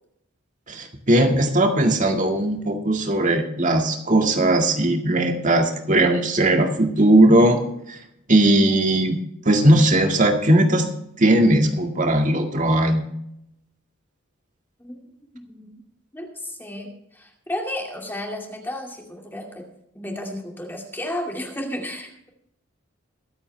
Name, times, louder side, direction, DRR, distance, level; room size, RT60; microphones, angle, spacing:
voice 1, 0.7-7.6 7.9-8.0 8.3-9.2 9.4-10.9 11.2-13.1, right 1 dB, 40° right, 4 dB, 2.0 m, -18 dB
voice 2, 15.3-15.8 16.1-19.7 19.9-22.3, left 1 dB, 10° left, 1 dB, 2.4 m, -33 dB
22.5 x 8.6 x 3.4 m, 0.75 s
head